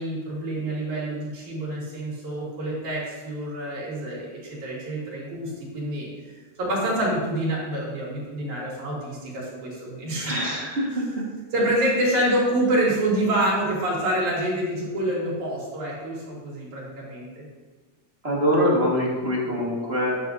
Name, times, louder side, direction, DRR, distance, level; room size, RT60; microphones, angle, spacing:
voice 1, 0.0-6.1 6.6-10.4 11.5-17.5, right 1 dB, 80° right, -5 dB, 4.2 m, -27 dB
voice 2, 10.2-11.0 12.2-12.3 18.2-20.2, equal, 30° right, -4 dB, 1.4 m, -24 dB
12.5 x 9.4 x 2.7 m, 1.3 s
omnidirectional pair, 3.4 m